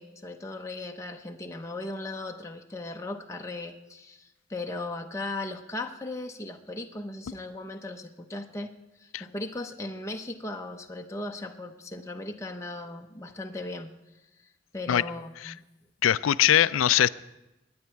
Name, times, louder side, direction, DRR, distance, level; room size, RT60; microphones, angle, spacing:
voice 1, 0.0-8.7 9.0-13.9 14.4-15.6, left 2 dB, 15° left, 3 dB, 0.7 m, -37 dB
voice 2, 16.0-17.1, left 11 dB, 85° left, 17 dB, 0.4 m, -21 dB
21.0 x 9.6 x 4.6 m, 0.99 s
head